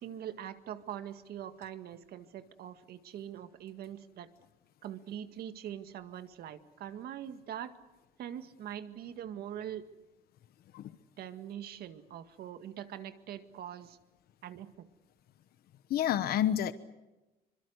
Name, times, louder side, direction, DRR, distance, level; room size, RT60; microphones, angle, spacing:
voice 1, 0.0-4.3 4.8-7.7 8.2-9.9 11.2-14.0 14.4-14.9, right 10 dB, 70° right, 9 dB, 1.9 m, -43 dB
voice 2, 15.9-16.7, left 10 dB, 65° left, 13 dB, 1.1 m, -28 dB
25.5 x 23.0 x 8.0 m, 1.1 s
cardioid pair, 110°, 17 cm